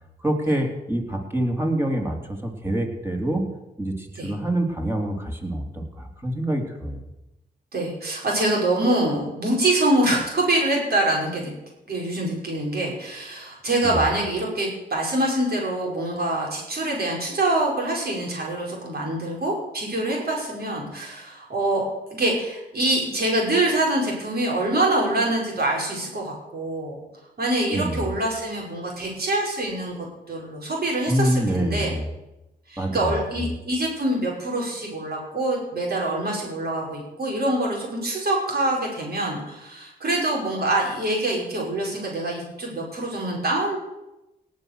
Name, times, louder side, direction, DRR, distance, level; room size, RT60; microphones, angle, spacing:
voice 1, 0.2-3.5 3.8-7.0 13.8-14.0 27.7-28.0 31.1-32.1 32.8-33.5, right 1 dB, 10° right, 2 dB, 3.6 m, -26 dB
voice 2, 7.7-11.5 11.9-21.8 22.1-27.0 27.4-32.0 32.7-43.8, right 1 dB, 55° right, -3 dB, 5.3 m, -25 dB
18.0 x 6.5 x 6.8 m, 0.95 s
supercardioid pair, 45°, 19 cm